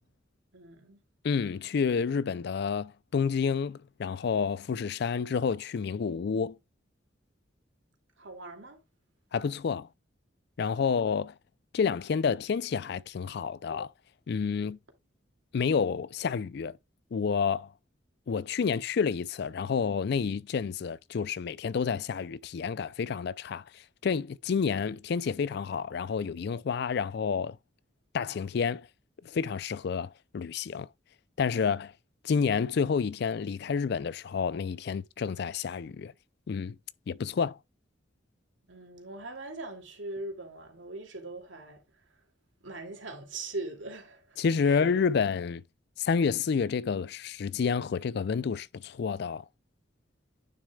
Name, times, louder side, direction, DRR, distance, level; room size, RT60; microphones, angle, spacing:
voice 1, 0.5-1.0 8.2-8.8 38.7-41.8 42.6-44.9, right 2 dB, 80° right, 2.4 m, -41 dB
voice 2, 1.2-6.6 9.3-9.9 10.6-11.3 11.7-13.9 14.3-14.8 15.5-16.8 17.1-17.7 18.3-27.6 28.1-28.9 29.2-30.9 31.4-31.9 32.2-36.1 36.5-36.8 37.1-37.6 44.4-45.6 46.0-49.4, left 6 dB, 55° left, 0.4 m, -29 dB
9.4 x 6.4 x 2.3 m
head